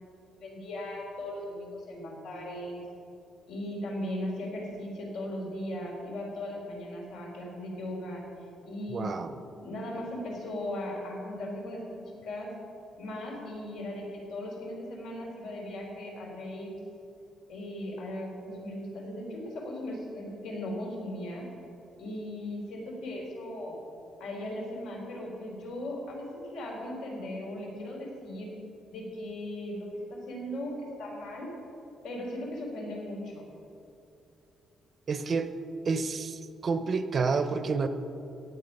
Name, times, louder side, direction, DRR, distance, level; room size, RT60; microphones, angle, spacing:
voice 1, 0.4-2.8 3.5-8.3 8.7-9.1 9.6-12.5 13.0-16.8 17.5-21.5 22.0-23.8 24.2-28.5 28.9-31.5 32.0-33.5, left 1 dB, 90° left, -1 dB, 3.6 m, -38 dB
voice 2, 8.9-9.4 35.1-35.5 35.8-37.9, right 4 dB, 35° right, 10 dB, 0.6 m, -29 dB
16.0 x 9.0 x 5.4 m, 2.8 s
cardioid pair, 170°, 0 cm